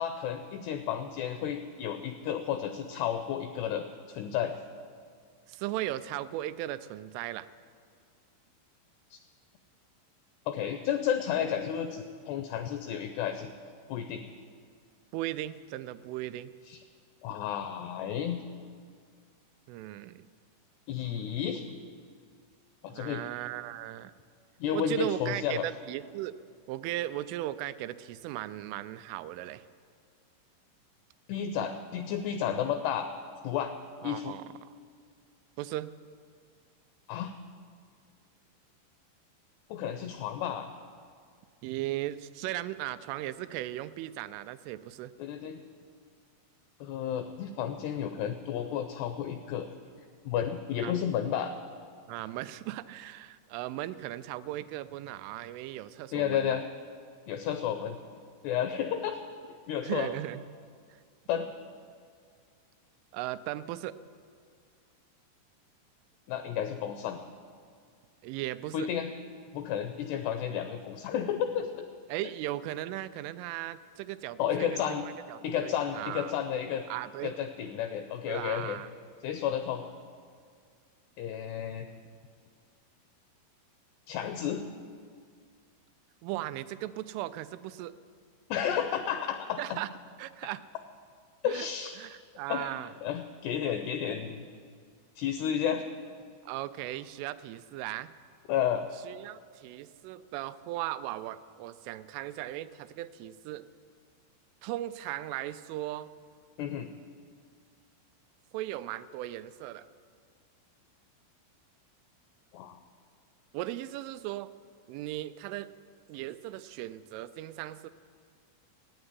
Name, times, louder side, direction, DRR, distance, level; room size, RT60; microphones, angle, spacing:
voice 1, 0.0-4.5 9.1-9.2 10.5-13.5 13.9-14.2 16.7-16.8 17.2-18.4 20.9-21.6 22.8-23.2 24.6-25.7 31.3-33.1 33.4-33.7 34.0-34.4 37.1-37.3 39.7-40.7 45.2-45.6 46.8-49.7 50.3-51.5 56.1-56.6 57.3-58.0 58.4-59.2 59.7-60.1 61.3-61.5 66.3-67.2 68.7-69.1 69.5-71.9 74.4-75.0 75.4-76.8 77.2-78.8 79.2-79.8 81.2-81.9 84.1-84.6 88.5-89.8 91.4-92.0 92.5-92.7 93.0-94.5 95.2-95.9 98.5-98.9 106.6-106.9 112.5-112.8, left 9 dB, 85° left, 8 dB, 2.3 m, -32 dB
voice 2, 5.5-7.5 15.1-16.5 19.7-20.3 22.9-24.1 24.7-26.4 26.7-29.6 34.0-34.4 35.6-35.9 41.6-45.1 50.8-51.0 52.1-56.6 59.8-60.4 63.1-64.0 68.2-68.9 72.1-76.3 76.9-77.3 78.3-78.9 86.2-87.9 89.6-89.9 90.2-90.6 91.4-91.7 92.0-92.9 96.5-98.1 99.0-103.7 104.6-106.1 108.5-109.9 113.5-114.5 114.9-115.7 116.1-117.9, right 15 dB, 90° right, 13 dB, 3.0 m, -37 dB
14.5 x 8.9 x 9.6 m, 2.1 s
omnidirectional pair, 5.5 m